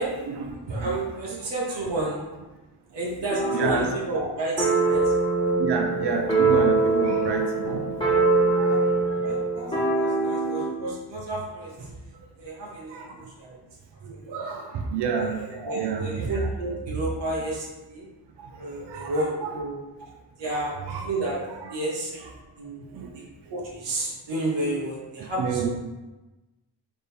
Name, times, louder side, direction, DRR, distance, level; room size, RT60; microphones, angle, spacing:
voice 1, 0.0-0.5 0.8-1.0 1.3-1.4 3.4-3.9 5.5-7.8 8.4-8.8 12.9-13.0 14.3-14.6 14.9-15.4 15.7-16.1 18.9-19.5 20.9-21.1 21.6-21.7 22.9-23.1 25.4-25.7, right 5 dB, 70° right, 3 dB, 0.7 m, -29 dB
voice 2, 0.7-2.2 2.9-5.1 9.1-11.9 12.4-13.6 14.1-14.4 15.2-18.1 18.6-19.8 20.4-21.4 21.7-22.1 22.6-23.0 23.5-25.7, right 2 dB, 90° right, -4 dB, 1.1 m, -31 dB
sound 1, 3.3-3.9 4.6-10.8, right 3 dB, 10° left, 1.2 m, -23 dB
3.6 x 3.3 x 4.3 m, 1.1 s
cardioid pair, 85°, 42 cm